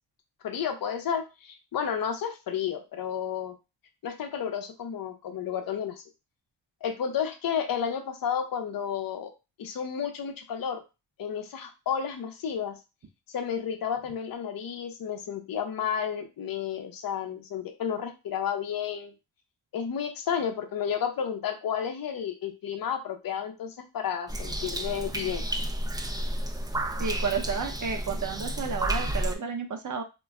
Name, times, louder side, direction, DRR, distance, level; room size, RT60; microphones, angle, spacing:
voice 1, 0.4-3.6 4.0-6.0 6.8-9.3 9.6-10.8 11.2-12.8 13.3-19.1 19.7-25.4, left 8 dB, 50° left, 6 dB, 0.6 m, -31 dB
sound 1, 24.3-29.4, right 1 dB, 10° right, 0.3 m, -31 dB
voice 2, 27.0-30.0, right 6 dB, 45° right, 5 dB, 0.6 m, -31 dB
2.2 x 2.0 x 3.5 m, 0.27 s
cardioid pair, 70°, 44 cm